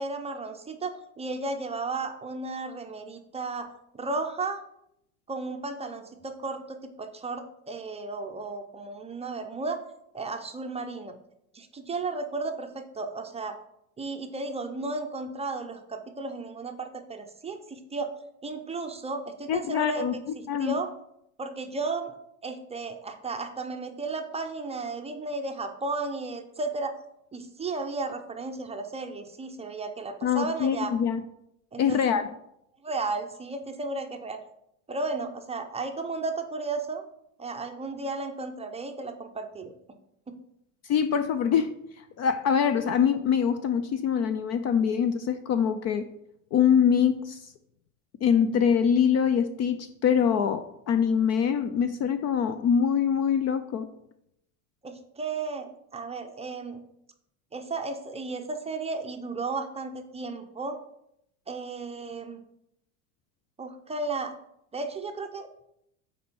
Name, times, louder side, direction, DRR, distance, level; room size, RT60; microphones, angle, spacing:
voice 1, 0.0-4.6 5.3-9.8 10.1-11.1 11.5-13.6 14.0-20.9 21.4-22.1 22.4-27.0 27.3-30.9 31.7-32.0 32.8-34.4 34.9-37.0 37.4-39.7 40.3-40.4 54.8-56.8 57.5-60.8 61.5-62.4 63.6-64.3 64.7-65.6, right 3 dB, 15° right, 5 dB, 0.5 m, -34 dB
voice 2, 19.5-20.2 20.5-20.8 30.2-31.2 31.8-32.3 40.9-41.7 42.2-46.1 46.5-47.5 48.2-53.9, left 7 dB, 40° left, 11 dB, 0.4 m, -24 dB
6.9 x 4.3 x 5.4 m, 0.78 s
supercardioid pair, 120°, 46 cm